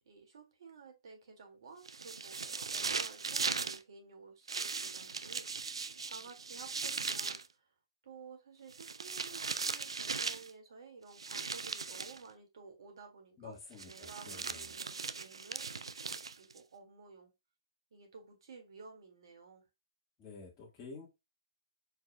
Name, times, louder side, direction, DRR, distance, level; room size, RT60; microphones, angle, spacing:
voice 1, 0.0-7.7 8.0-13.6 13.8-15.7 16.0-17.3 17.9-19.7, right 5 dB, 60° right, 4 dB, 2.0 m, -54 dB
sound 1, 1.9-3.8 4.5-7.5 8.7-10.5 11.2-12.2 13.8-16.6, right 5 dB, 80° right, 0.4 m, -38 dB
voice 2, 13.4-14.7 20.2-21.1, left 4 dB, 20° left, -5 dB, 1.5 m, -50 dB
4.7 x 4.4 x 2.2 m, 0.23 s
hypercardioid pair, 130°, 3 cm